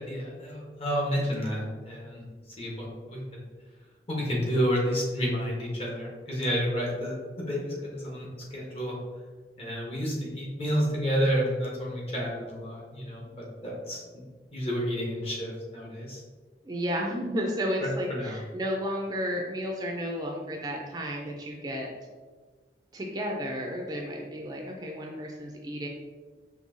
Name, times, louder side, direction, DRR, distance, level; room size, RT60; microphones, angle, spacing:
voice 1, 0.0-2.2 2.6-3.4 4.1-9.0 9.6-14.0 14.5-16.2 17.8-18.4, equal, 35° left, -3 dB, 1.0 m, -30 dB
voice 2, 16.6-21.9 22.9-25.9, equal, 20° right, 0 dB, 0.4 m, -32 dB
5.3 x 2.7 x 2.6 m, 1.4 s
head